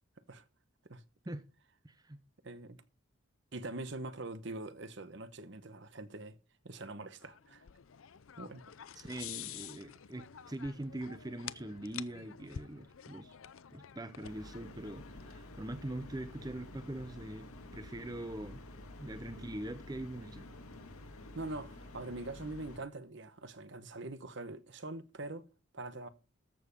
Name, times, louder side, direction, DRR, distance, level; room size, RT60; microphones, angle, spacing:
voice 1, 1.8-2.2 9.0-13.4 13.7-18.6 19.0-20.4, right 1 dB, 20° right, 0.7 m, -43 dB
voice 2, 2.4-2.8 3.5-6.4 6.6-7.7 8.4-8.6 8.9-9.1 21.3-25.5 25.7-26.1, right 2 dB, 55° right, 1.0 m, -43 dB
sound 1, 7.2-15.8, left 9 dB, 70° left, 0.5 m, -49 dB
sound 2, 14.2-22.8, left 1 dB, 90° left, 2.1 m, -50 dB
13.5 x 7.1 x 5.3 m
head